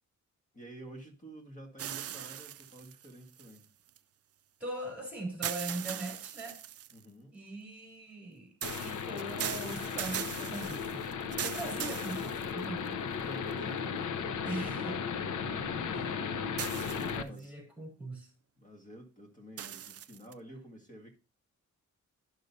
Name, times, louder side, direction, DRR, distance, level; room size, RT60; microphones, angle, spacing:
voice 1, 0.5-3.7 6.9-7.3 13.2-14.7 16.8-17.6 18.6-21.2, right 1 dB, 25° left, 1.8 m, -50 dB
sound 1, 1.8-4.0 5.4-7.0 8.6-12.9 13.5-13.6 16.6-17.4 19.6-20.3, right 11 dB, 55° right, 0.4 m, -40 dB
voice 2, 4.6-6.6 7.3-8.5 8.8-11.0 11.4-13.0 14.4-15.0 15.9-16.4 17.1-18.3, right 2 dB, 5° right, 3.7 m, -41 dB
sound 2, 8.6-17.2, left 6 dB, 75° left, 0.8 m, -36 dB
11.5 x 6.4 x 2.7 m
wide cardioid pair, 150°, 31 cm